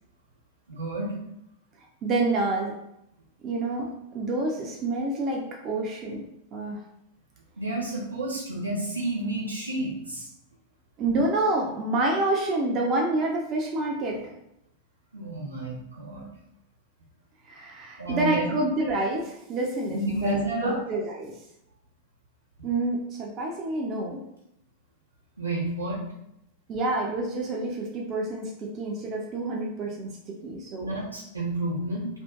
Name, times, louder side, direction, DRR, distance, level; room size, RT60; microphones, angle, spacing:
voice 1, 0.7-1.1 7.6-10.3 15.1-16.3 18.0-18.4 19.9-20.8 25.4-26.0 30.8-32.1, right 1 dB, 85° right, -5 dB, 0.8 m, -30 dB
voice 2, 2.0-2.7 3.4-6.2 6.5-6.8 11.0-14.3 17.5-21.3 22.6-24.2 26.7-30.9, right 2 dB, 30° right, -1 dB, 0.5 m, -28 dB
2.6 x 2.4 x 2.3 m, 0.81 s
figure-of-eight pair, 90°, 0 cm